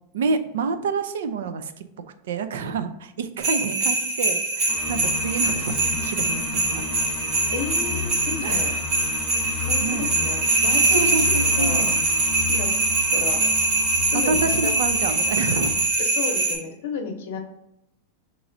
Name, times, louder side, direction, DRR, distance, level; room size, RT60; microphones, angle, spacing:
voice 1, 0.1-1.8 2.3-6.8 8.4-8.8 9.8-10.1 10.9-12.0 14.1-15.7, right 5 dB, 80° right, 10 dB, 0.4 m, -28 dB
sound 1, 3.4-16.6, right 2 dB, 45° right, 1.1 m, -23 dB
sound 2, 4.7-15.9, left 6 dB, 25° left, 0.8 m, -33 dB
voice 2, 7.5-8.7 9.6-11.9 12.5-12.7 13.1-13.4 14.1-14.7 16.0-17.4, left 5 dB, 70° left, 5 dB, 0.7 m, -32 dB
5.9 x 3.0 x 2.6 m, 0.85 s
supercardioid pair, 155°, 0 cm